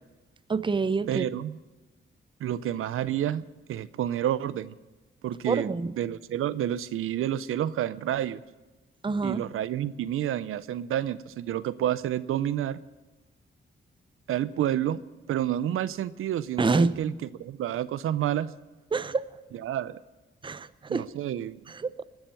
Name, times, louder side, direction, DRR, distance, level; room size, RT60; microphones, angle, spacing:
voice 1, 0.5-1.2 5.5-5.9 9.0-9.4 16.6-17.0 18.9-19.3 20.4-21.1 21.7-22.0, right 4 dB, 25° right, 14 dB, 0.6 m, -27 dB
voice 2, 1.1-1.6 2.4-4.7 5.2-5.7 6.0-8.4 9.2-12.8 14.3-15.0 15.3-17.1 17.4-18.5 19.5-20.0 20.9-21.6, right 11 dB, 80° right, 16 dB, 0.5 m, -29 dB
20.0 x 7.2 x 8.7 m, 1.2 s
cardioid pair, 75°, 21 cm